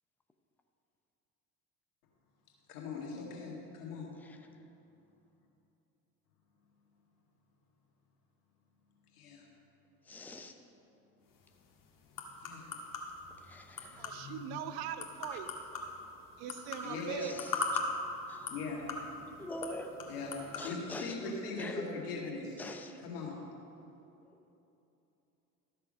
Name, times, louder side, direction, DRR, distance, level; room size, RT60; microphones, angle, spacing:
voice 1, 2.7-4.1 9.1-9.4 12.4-12.7 16.8-17.3 18.5-18.9 20.1-22.6 23.0-23.4, left 4 dB, 75° left, -1 dB, 2.0 m, -40 dB
voice 2, 10.1-10.5 13.4-14.1 17.2-17.5 18.3-18.5 19.4-20.0 20.6-21.1 21.6-21.8 22.6-23.0 24.2-24.4, left 2 dB, 5° left, 5 dB, 0.7 m, -44 dB
sound 1, 11.3-20.7, left 4 dB, 45° left, 1.6 m, -41 dB
voice 3, 13.8-15.5 16.4-17.3, right 10 dB, 55° right, 10 dB, 0.7 m, -41 dB
13.0 x 6.7 x 5.2 m, 2.9 s
figure-of-eight pair, 60°, 47 cm